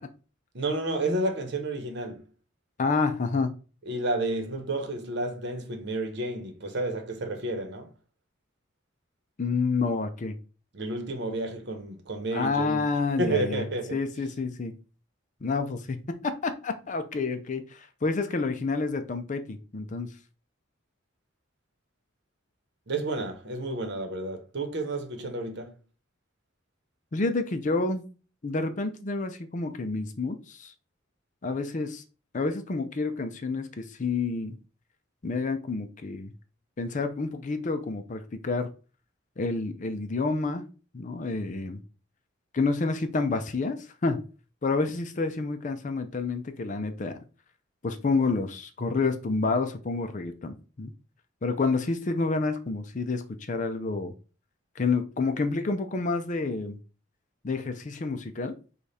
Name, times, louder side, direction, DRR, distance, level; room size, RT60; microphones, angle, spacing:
voice 1, 0.5-2.2 3.8-7.9 10.7-12.8 13.2-14.0 22.9-25.8, right 2 dB, 60° right, 0.9 m, -31 dB
voice 2, 2.8-3.5 9.4-10.4 12.3-13.6 13.9-14.7 15.4-20.1 27.1-28.0 28.4-30.7 31.4-32.0 32.3-34.5 35.2-36.3 36.8-38.7 39.4-40.6 40.9-41.8 42.5-43.8 44.0-44.2 44.6-47.2 47.8-50.9 51.4-53.2 53.5-54.1 54.8-56.8 57.4-58.5, left 3 dB, 40° left, 0.5 m, -29 dB
5.1 x 2.4 x 4.1 m
head